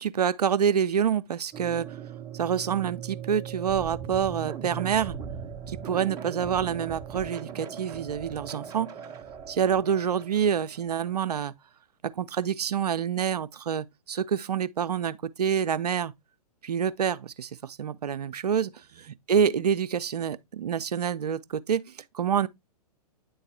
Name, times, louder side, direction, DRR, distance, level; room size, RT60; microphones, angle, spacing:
voice 1, 0.0-1.9 2.3-5.2 5.7-8.9 9.5-11.5 12.2-16.1 16.6-21.8 22.1-22.5, right 8 dB, 70° right, 0.5 m, -27 dB
sound 1, 1.5-11.1, right 8 dB, 15° right, 0.6 m, -39 dB
9.3 x 3.9 x 2.6 m
figure-of-eight pair, 120°, 21 cm